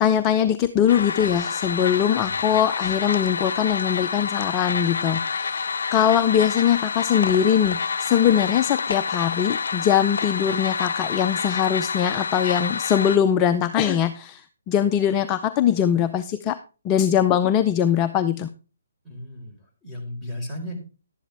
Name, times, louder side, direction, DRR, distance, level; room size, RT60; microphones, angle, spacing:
voice 1, 0.0-16.6 16.8-18.5, left 9 dB, 20° left, 9 dB, 0.5 m, -21 dB
sound 1, 0.9-13.2, left 5 dB, 70° left, 0.5 m, -28 dB
voice 2, 2.2-2.6 19.0-20.8, left 1 dB, 5° right, -3 dB, 4.2 m, -36 dB
11.5 x 10.0 x 3.4 m, 0.34 s
hypercardioid pair, 150°, 0 cm